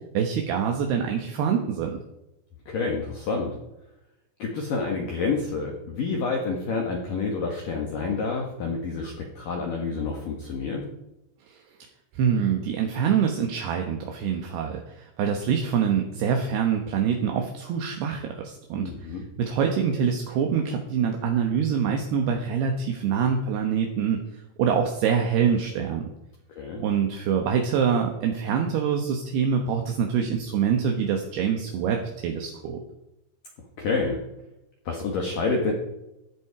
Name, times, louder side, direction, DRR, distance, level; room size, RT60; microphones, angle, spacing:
voice 1, 0.1-2.0 11.5-11.6 12.1-24.2 24.6-26.0 26.8-32.8, right 7 dB, 70° right, 3 dB, 2.6 m, -25 dB
voice 2, 2.7-3.6 4.4-10.9 18.8-19.3 26.6-26.8 28.5-28.6 33.8-34.2 34.9-35.7, left 4 dB, 60° left, 0 dB, 2.5 m, -28 dB
15.5 x 10.5 x 4.9 m, 0.90 s
omnidirectional pair, 6.0 m